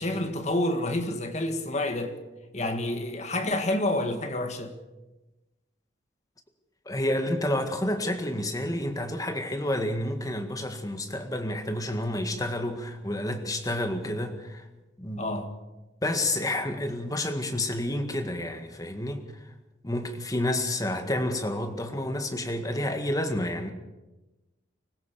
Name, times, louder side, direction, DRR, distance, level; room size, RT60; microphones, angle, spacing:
voice 1, 0.0-2.2 2.5-4.7 15.2-15.5, left 1 dB, 35° left, 1.9 m, -28 dB
voice 2, 6.9-14.6 15.0-15.3 16.0-19.2 19.8-23.7, left 1 dB, 20° left, 1.9 m, -29 dB
25.0 x 16.0 x 7.0 m
head